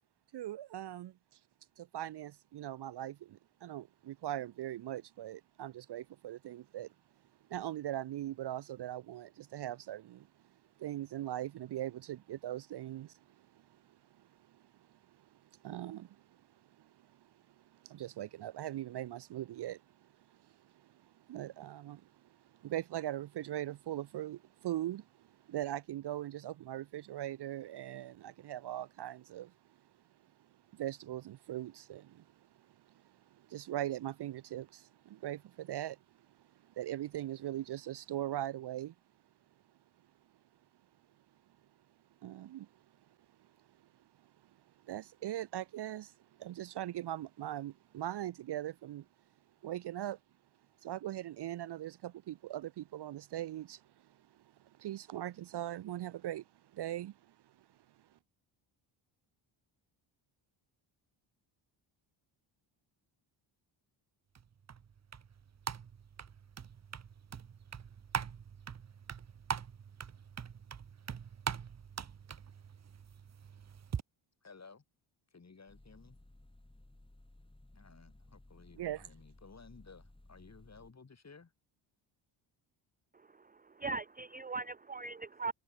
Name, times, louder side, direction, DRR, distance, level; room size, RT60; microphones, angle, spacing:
voice 1, 0.3-1.1 1.8-6.9 7.5-10.3 10.8-14.6 14.9-15.3 15.6-16.4 16.8-29.5 30.7-32.3 32.8-36.0 36.6-38.9 42.2-42.7 44.8-49.1 49.6-50.2 50.8-54.1 54.6-56.4 56.7-57.2 78.8-79.1, right 13 dB, 55° right, 0.7 m, -41 dB
sound 1, 64.3-74.0, right 7 dB, 35° right, 1.1 m, -43 dB
voice 2, 74.4-74.8 75.3-76.2 77.7-81.5, left 4 dB, 30° left, 6.8 m, -56 dB
sound 2, 75.7-80.9, left 1 dB, 10° left, 5.8 m, -59 dB
voice 3, 83.1-85.5, right 3 dB, 20° right, 0.7 m, -40 dB
cardioid pair, 75°, 49 cm